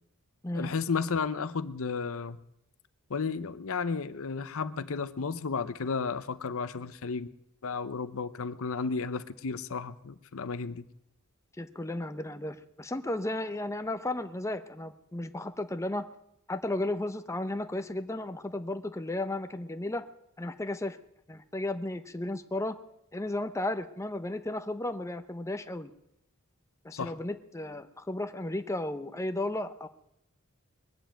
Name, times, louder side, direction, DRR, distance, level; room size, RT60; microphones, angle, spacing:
voice 1, 0.5-2.4 3.1-7.3 7.6-10.8 26.9-27.1, left 5 dB, 65° left, 14 dB, 0.7 m, -33 dB
voice 2, 11.6-16.0 16.5-20.1 20.4-21.0 21.3-22.8 23.1-25.9 26.8-29.9, left 1 dB, 15° left, 9 dB, 0.6 m, -34 dB
21.0 x 7.4 x 8.9 m, 0.82 s
head